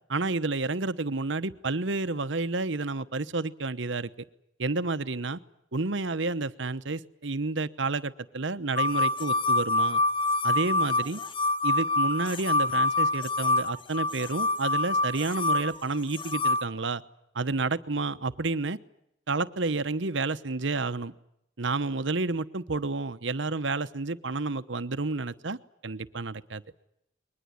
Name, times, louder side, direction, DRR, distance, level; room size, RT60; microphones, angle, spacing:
voice 1, 0.1-4.1 4.6-5.4 5.7-10.0 10.4-11.2 11.6-17.0 17.3-18.8 19.3-21.1 21.6-26.6, right 3 dB, 70° right, 13 dB, 1.0 m, -30 dB
sound 1, 8.8-16.7, left 2 dB, 25° left, 1.1 m, -26 dB
22.0 x 20.0 x 9.9 m, 0.79 s
head